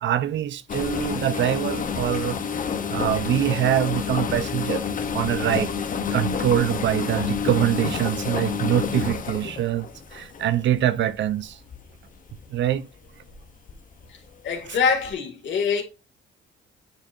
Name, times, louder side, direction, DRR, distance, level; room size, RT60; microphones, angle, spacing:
voice 1, 0.0-2.4 2.9-4.9 5.1-5.7 6.1-11.6 12.5-12.9, right 11 dB, 65° right, 0.6 m, -24 dB
sound 1, 0.7-10.9 11.5-11.8 12.3-12.5 13.3-13.7 14.0-14.1 15.1-15.2, left 6 dB, 40° left, 0.8 m, -28 dB
voice 2, 14.4-15.8, left 6 dB, 70° left, 2.0 m, -24 dB
9.0 x 4.2 x 2.6 m
cardioid pair, 90°, 20 cm